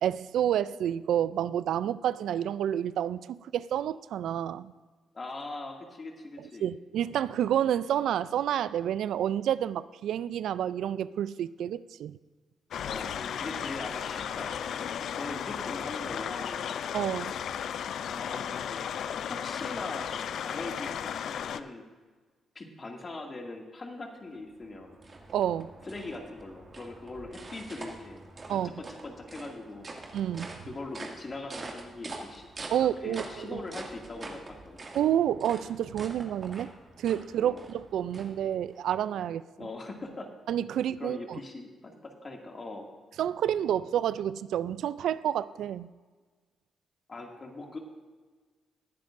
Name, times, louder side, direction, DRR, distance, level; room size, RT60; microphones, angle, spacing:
voice 1, 0.0-4.7 6.4-12.2 16.9-17.3 25.3-25.7 28.5-28.7 30.1-30.5 32.7-33.6 34.9-36.7 37.0-39.4 40.5-41.4 43.2-45.9, right 10 dB, 75° right, 0.3 m, -29 dB
voice 2, 5.1-6.7 12.8-16.7 18.1-18.9 19.3-21.8 22.6-25.0 25.9-28.2 28.5-29.9 30.7-32.5 32.8-34.8 37.4-37.6 39.6-40.3 41.0-42.9 47.1-47.8, left 2 dB, 40° left, 2.2 m, -41 dB
sound 1, 12.7-21.6, left 8 dB, 70° left, 0.4 m, -35 dB
sound 2, 24.3-38.8, right 2 dB, 40° right, 2.2 m, -45 dB
19.0 x 10.5 x 2.6 m
supercardioid pair, 55°, 0 cm